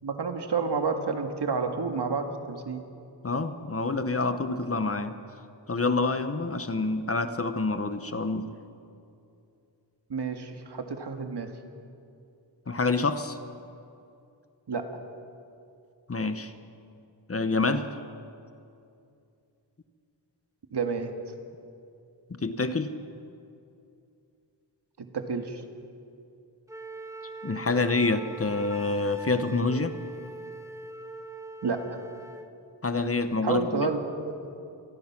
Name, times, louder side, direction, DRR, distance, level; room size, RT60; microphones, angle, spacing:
voice 1, 0.0-2.8 10.1-11.5 14.7-14.8 20.7-21.1 25.0-25.6 31.6-32.0 33.4-34.0, right 5 dB, 60° right, 5 dB, 2.0 m, -30 dB
voice 2, 3.2-5.2 5.7-8.5 12.7-13.4 16.1-16.5 17.3-17.9 22.3-23.0 27.4-29.9 32.8-33.9, left 3 dB, 30° left, 9 dB, 1.0 m, -27 dB
Wind instrument woodwind instrument, 26.7-32.5, right 2 dB, 5° right, 1.5 m, -42 dB
27.0 x 19.0 x 6.0 m, 2.6 s
wide cardioid pair, 125°, 44 cm